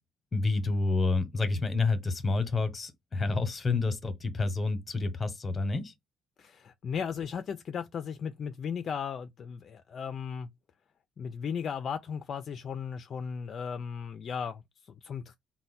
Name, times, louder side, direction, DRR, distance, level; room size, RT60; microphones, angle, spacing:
voice 1, 0.3-5.9, left 3 dB, 30° left, 0.9 m, -29 dB
voice 2, 6.4-10.5 11.2-15.3, left 7 dB, 50° left, 0.4 m, -36 dB
4.2 x 2.1 x 4.1 m
cardioid pair, 90°, 0 cm